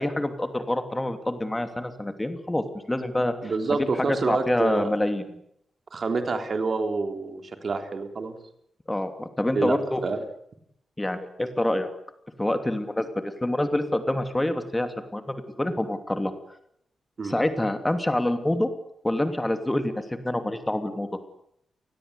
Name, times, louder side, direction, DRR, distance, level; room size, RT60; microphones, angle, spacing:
voice 1, 0.0-3.4 4.0-5.2 8.9-10.0 11.0-11.9 12.4-16.3 17.2-18.7 19.0-21.1, left 1 dB, 10° left, 8 dB, 2.9 m, -26 dB
voice 2, 3.4-4.9 5.9-8.4 9.5-9.8 10.0-10.2 17.2-17.4, right 4 dB, 40° right, 6 dB, 3.9 m, -27 dB
29.0 x 20.5 x 8.3 m, 0.72 s
wide cardioid pair, 155°, 0 cm